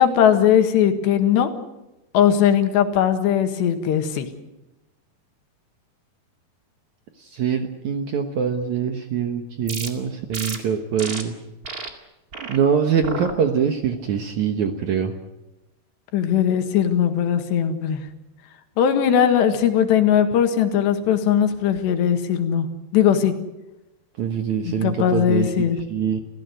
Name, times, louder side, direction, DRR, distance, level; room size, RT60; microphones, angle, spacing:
voice 1, 0.0-1.5 2.1-4.3 16.1-18.0 18.8-22.7 22.9-23.3 24.6-25.8, left 9 dB, 85° left, 7 dB, 3.9 m, -19 dB
voice 2, 7.2-11.4 12.5-15.1 24.2-26.2, right 7 dB, 65° right, 6 dB, 2.0 m, -24 dB
sound 1, 9.7-9.9 10.3-10.6 11.0-11.2 11.6-11.9 12.3-12.6 13.0-13.3 13.8-14.2, right 4 dB, 35° right, 1.6 m, -32 dB
28.5 x 16.0 x 8.0 m, 1.0 s
omnidirectional pair, 4.9 m